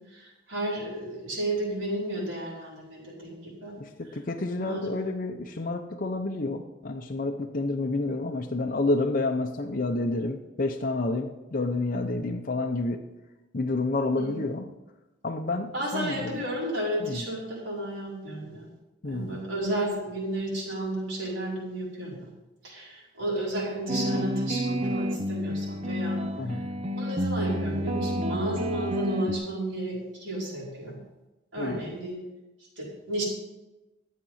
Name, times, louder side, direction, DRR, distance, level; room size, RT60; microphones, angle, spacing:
voice 1, 0.1-3.7 4.6-5.1 14.2-14.4 15.7-18.7 19.0-22.3 22.6-26.6 26.9-31.0 31.5-32.2 32.8-33.2, right 1 dB, 80° right, -5 dB, 4.7 m, -33 dB
voice 2, 3.8-13.0 13.5-14.7 15.2-16.4 17.0-17.2 19.0-19.4 26.4-26.7 31.6-31.9, left 2 dB, 45° left, 3 dB, 0.7 m, -29 dB
sound 1, 23.9-29.4, equal, 35° right, 0.6 m, -29 dB
12.0 x 7.5 x 5.6 m, 1.0 s
head